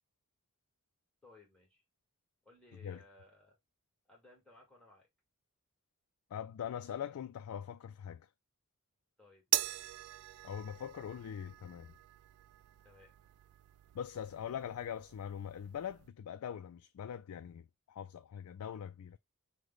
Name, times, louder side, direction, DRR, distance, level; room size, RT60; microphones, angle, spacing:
voice 1, 1.2-1.8 2.4-3.6 4.0-5.1 9.2-9.9 12.8-13.1, left 2 dB, 5° left, 1.5 m, -61 dB
voice 2, 6.3-8.3 10.4-11.9 13.9-19.2, left 8 dB, 80° left, 0.3 m, -42 dB
sound 1, 9.5-16.1, right 15 dB, 80° right, 0.3 m, -41 dB
5.0 x 2.2 x 3.9 m
head